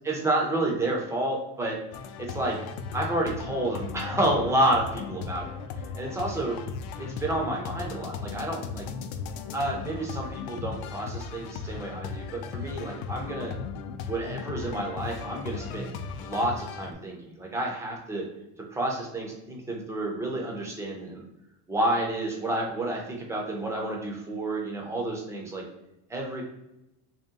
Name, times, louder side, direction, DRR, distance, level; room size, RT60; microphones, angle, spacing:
voice 1, 0.0-1.8 2.2-2.6 2.9-5.5 6.0-6.6 7.0-8.9 9.5-13.6 14.1-18.2 18.7-21.2 21.7-25.6 26.1-26.4, right 1 dB, 10° right, -1 dB, 0.4 m, -30 dB
sound 1, 1.9-16.9, left 6 dB, 65° left, 0.5 m, -37 dB
2.9 x 2.8 x 3.6 m, 0.89 s
cardioid pair, 165°, 38 cm